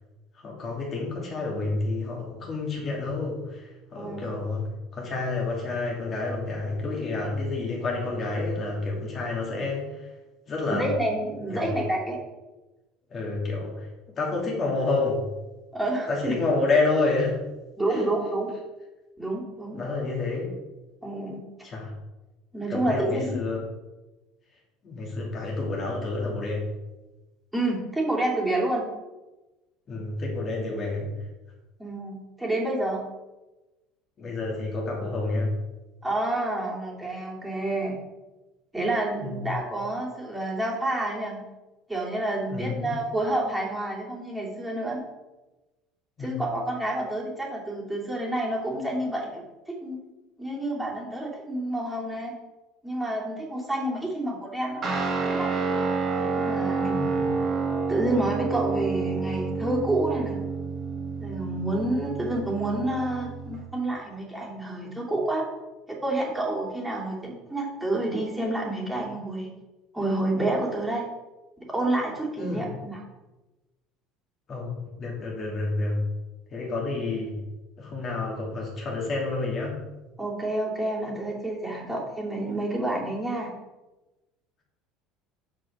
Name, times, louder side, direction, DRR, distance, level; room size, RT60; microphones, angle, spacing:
voice 1, 0.4-10.1 10.5-10.9 11.5-11.8 13.1-13.9 14.2-15.2 16.1-17.4 17.9-18.1 19.7-20.5 21.6-21.9 22.7-23.6 24.8-26.7 29.9-31.1 34.2-35.6 39.2-39.5 42.5-43.0 46.2-46.4 56.9-57.3 72.3-72.7 74.5-76.0 76.5-77.4 77.8-79.8, left 3 dB, 35° left, -2 dB, 3.1 m, -29 dB
voice 2, 10.7-12.2 15.7-16.3 17.8-18.5 19.2-19.8 21.0-21.4 22.5-23.4 27.5-28.8 31.8-33.0 36.0-38.0 38.7-41.4 41.9-45.0 46.2-49.4 49.8-50.0 50.4-52.4 52.8-54.8 55.3-55.5 56.2-57.0 57.9-60.4 61.2-65.5 65.9-69.5 69.9-71.0 71.7-73.0 80.2-83.5, right 1 dB, 5° right, -4 dB, 2.9 m, -29 dB
Guitar, 54.8-63.6, right 4 dB, 35° right, 1.9 m, -29 dB
7.4 x 6.1 x 5.1 m, 1.1 s
figure-of-eight pair, 65°, 0 cm